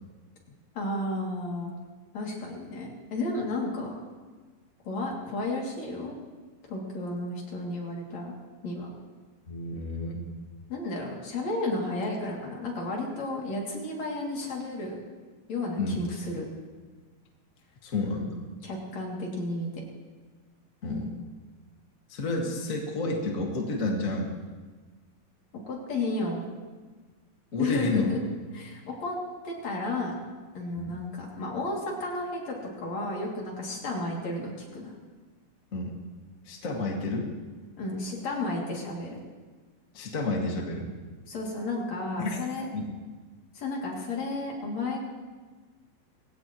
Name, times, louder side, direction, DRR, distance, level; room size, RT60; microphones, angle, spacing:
voice 1, 0.8-1.7 2.1-4.0 4.9-6.2 6.7-8.3 8.6-8.9 10.7-15.0 15.5-16.5 18.6-19.8 25.7-26.4 27.6-28.2 28.5-29.2 29.4-30.2 30.5-34.9 37.8-39.2 41.3-42.7 43.5-45.0, left 2 dB, 50° left, -2 dB, 3.8 m, -32 dB
voice 2, 9.5-10.2 15.8-16.0 17.8-18.4 20.8-21.1 22.1-24.3 27.5-28.1 30.8-30.9 35.7-35.9 36.4-37.3 39.9-40.9 42.2-42.4 42.7-42.9, left 2 dB, 30° left, -1 dB, 1.6 m, -30 dB
21.5 x 17.0 x 3.1 m, 1.4 s
omnidirectional pair, 4.4 m